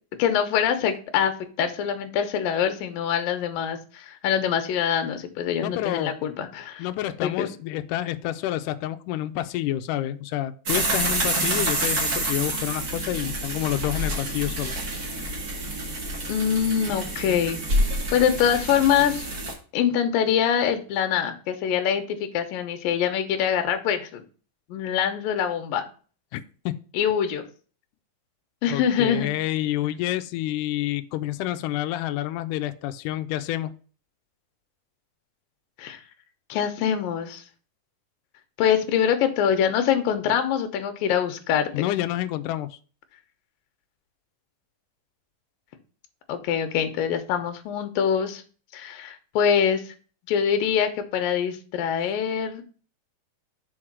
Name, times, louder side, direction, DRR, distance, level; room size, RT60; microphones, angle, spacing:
voice 1, 0.2-1.3 1.6-6.9 7.2-7.5 16.3-17.6 18.1-19.3 19.7-24.2 24.7-25.8 26.9-27.4 28.6-29.3 29.8-30.0 35.8-36.0 36.5-37.4 38.6-41.8 46.3-48.4 48.7-49.9 50.3-52.6, left 8 dB, 75° left, 8 dB, 2.6 m, -24 dB
voice 2, 5.6-6.1 6.8-14.8 26.3-26.7 28.7-33.8 41.7-42.8, left 14 dB, 90° left, 9 dB, 1.8 m, -28 dB
sound 1, 10.7-19.5, right 1 dB, 45° right, 1.2 m, -28 dB
6.2 x 4.7 x 6.0 m, 0.39 s
omnidirectional pair, 4.3 m